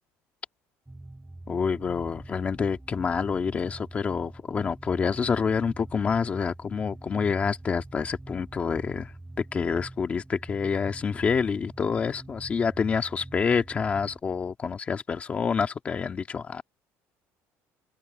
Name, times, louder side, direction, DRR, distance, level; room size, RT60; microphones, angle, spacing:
sound 1, 0.9-14.2, right 2 dB, 5° right, 7.6 m, -45 dB
voice 1, 1.5-16.6, left 6 dB, 20° left, 1.9 m, -27 dB
cardioid pair, 175°, 6 cm